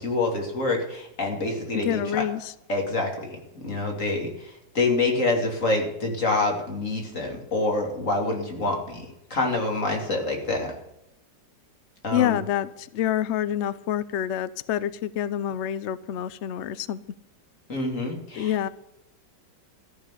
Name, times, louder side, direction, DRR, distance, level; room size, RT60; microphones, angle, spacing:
voice 1, 0.0-2.2 2.7-10.7 12.0-12.4 17.7-18.5, left 2 dB, 45° left, 1 dB, 3.2 m, -27 dB
voice 2, 1.7-2.5 12.1-17.0 18.3-18.7, left 11 dB, 85° left, 16 dB, 0.6 m, -27 dB
14.0 x 6.5 x 9.7 m, 0.87 s
omnidirectional pair, 2.0 m